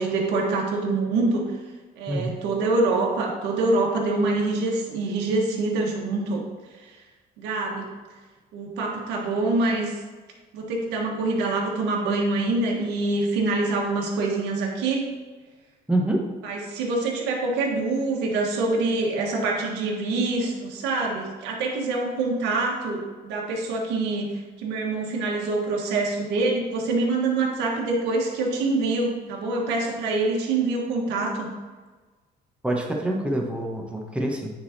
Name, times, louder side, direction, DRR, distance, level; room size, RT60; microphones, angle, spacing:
voice 1, 0.0-1.5 2.0-6.4 6.8-6.9 7.4-8.0 8.5-10.0 10.5-15.1 16.4-31.5, right 3 dB, 90° right, -1 dB, 1.5 m, -25 dB
voice 2, 2.1-2.4 15.9-16.3 32.6-34.5, right 1 dB, 5° right, 0 dB, 1.4 m, -26 dB
9.6 x 4.1 x 4.3 m, 1.4 s
cardioid pair, 110°, 17 cm